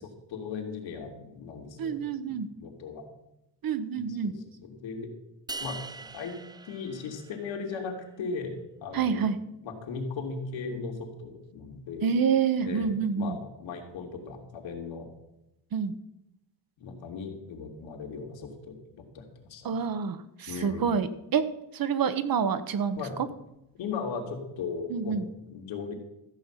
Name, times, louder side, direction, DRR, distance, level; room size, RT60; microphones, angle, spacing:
voice 1, 0.3-2.0 2.3-3.0 3.9-4.3 4.6-5.1 5.6-6.4 6.7-9.3 9.6-12.1 12.6-15.1 16.8-19.8 20.5-21.0 23.0-23.2 23.8-25.9, left 4 dB, 75° left, 1 dB, 3.1 m, -37 dB
voice 2, 1.8-2.5 3.6-4.3 8.9-9.4 12.0-13.4 15.7-15.9 19.6-21.4 21.7-23.0 24.9-25.2, right 6 dB, 50° right, 12 dB, 1.1 m, -27 dB
sound 1, 5.5-7.8, right 3 dB, 10° right, 0.5 m, -42 dB
14.5 x 5.5 x 9.0 m, 0.88 s
cardioid pair, 115°, 45 cm